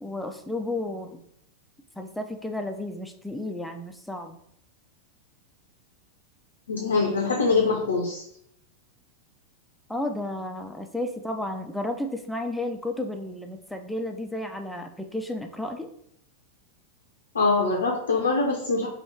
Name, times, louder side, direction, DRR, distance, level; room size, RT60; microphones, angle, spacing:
voice 1, 0.0-1.2 2.0-4.4 9.9-15.9, left 1 dB, 5° left, 4 dB, 0.4 m, -32 dB
voice 2, 6.7-8.2 17.3-18.9, left 3 dB, 70° left, -1 dB, 0.5 m, -23 dB
2.9 x 2.3 x 3.3 m, 0.73 s
figure-of-eight pair, 90°, 0 cm